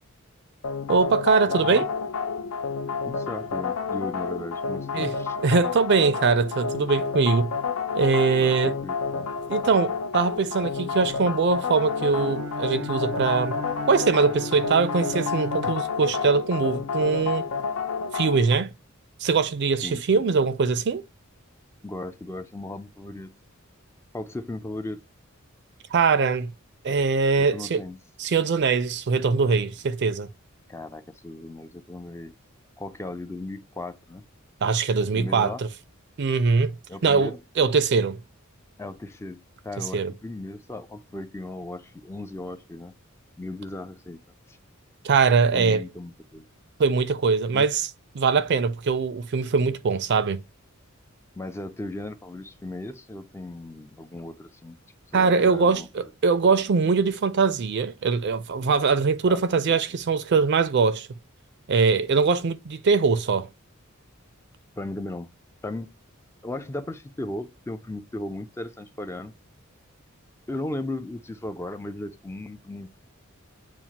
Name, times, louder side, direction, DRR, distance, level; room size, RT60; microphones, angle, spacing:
sound 1, 0.6-18.5, left 5 dB, 75° left, 0.5 m, -30 dB
voice 1, 0.9-1.9 4.9-5.1 5.4-7.5 7.9-8.7 9.5-13.6 13.9-17.5 18.1-18.7 19.2-21.0 25.9-26.5 26.8-27.8 28.2-30.3 34.6-35.7 36.2-36.7 37.0-38.2 39.9-40.1 45.0-45.8 46.8-47.9 48.1-50.4 55.1-61.1 61.7-63.5, right 5 dB, 55° right, 0.4 m, -22 dB
voice 2, 1.5-1.9 3.1-5.4 8.4-8.6 8.8-9.3 19.8-20.3 21.8-23.3 24.1-25.0 27.4-28.0 30.7-32.3 32.8-34.2 35.1-35.6 36.9-37.4 38.8-42.9 43.4-44.2 44.5-44.6 45.5-46.5 47.5-47.7 51.4-54.8 55.1-56.1 59.2-59.8 64.8-65.3 65.6-65.9 66.4-69.3 70.5-73.0, left 2 dB, 10° left, 0.3 m, -36 dB
Bowed string instrument, 11.8-16.4, left 1 dB, 90° right, 0.8 m, -35 dB
7.1 x 2.4 x 2.8 m
head